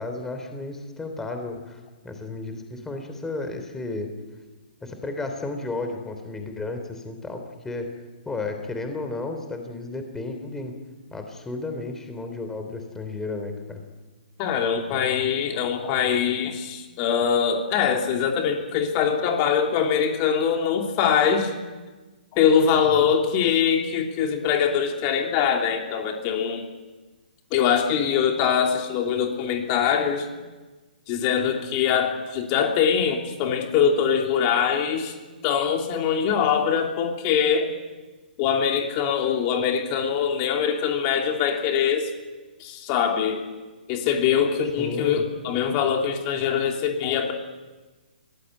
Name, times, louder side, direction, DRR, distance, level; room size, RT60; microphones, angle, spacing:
voice 1, 0.0-4.1 4.8-7.9 8.2-10.8 11.1-13.9 22.9-23.1 44.8-45.2, left 3 dB, 10° left, 5 dB, 3.2 m, -33 dB
voice 2, 14.4-21.5 22.3-26.6 27.5-30.3 31.1-35.1 35.4-37.7 38.4-42.1 42.6-43.4 43.9-47.3, left 7 dB, 35° left, 3 dB, 3.0 m, -23 dB
23.5 x 18.5 x 9.2 m, 1.3 s
hypercardioid pair, 135°, 5 cm